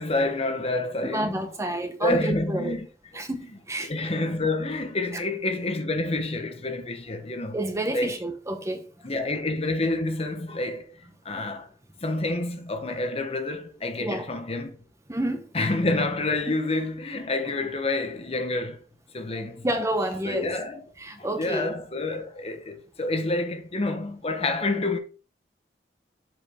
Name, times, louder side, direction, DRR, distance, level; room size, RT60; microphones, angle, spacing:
voice 1, 0.0-1.4 2.0-2.9 3.1-3.2 3.8-7.6 7.9-8.2 9.0-11.7 12.0-14.7 15.5-18.8 19.1-19.7 20.2-20.8 21.1-25.0, left 2 dB, 35° left, 1.0 m, -28 dB
voice 2, 1.1-2.8 3.1-3.9 7.5-8.9 14.0-14.3 15.1-15.5 19.3-20.5 21.0-21.7, right 1 dB, 15° right, 0.8 m, -29 dB
7.3 x 5.1 x 3.5 m
head